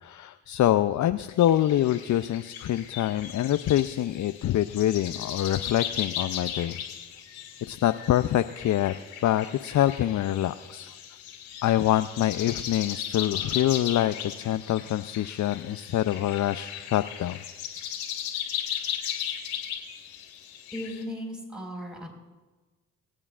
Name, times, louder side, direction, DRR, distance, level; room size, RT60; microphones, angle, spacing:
voice 1, 0.0-6.8 7.6-10.9 11.6-17.4, left 12 dB, 50° left, 10 dB, 0.6 m, -25 dB
sound 1, 1.4-21.0, left 9 dB, 85° left, 2.4 m, -37 dB
voice 2, 20.7-22.1, equal, ahead, 1 dB, 4.7 m, -36 dB
24.5 x 8.8 x 2.5 m, 1.2 s
hypercardioid pair, 45°, 36 cm